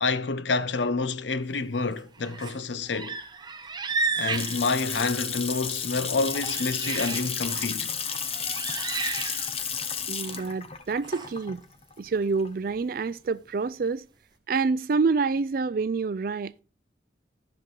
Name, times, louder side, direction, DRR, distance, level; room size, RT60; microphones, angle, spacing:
voice 1, 0.0-3.2 4.2-7.9, left 3 dB, 80° left, 0.7 m, -28 dB
sound 1, 2.0-2.6 2.9-5.6 6.0-7.7 8.1-9.8 10.1-10.4 11.0-11.3, right 4 dB, 25° right, 0.7 m, -34 dB
Water tap faucet / Sink (filling or washing) / Splash splatter, 3.9-12.8, left 7 dB, 35° left, 1.0 m, -33 dB
voice 2, 10.1-11.6 12.0-14.0 14.5-16.6, right 4 dB, 50° right, 0.4 m, -27 dB
14.0 x 6.0 x 3.8 m
head